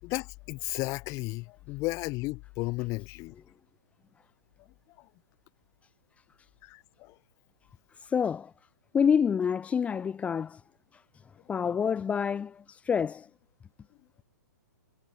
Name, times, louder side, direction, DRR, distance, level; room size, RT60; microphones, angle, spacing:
voice 1, 0.0-3.3 5.0-5.1 6.6-7.2, left 23 dB, 30° left, 3.8 m, -34 dB
voice 2, 8.0-8.5 8.9-10.6 10.9-11.0 11.5-13.3, left 7 dB, 10° left, 0.8 m, -27 dB
figure-of-eight pair, 120°, 10 cm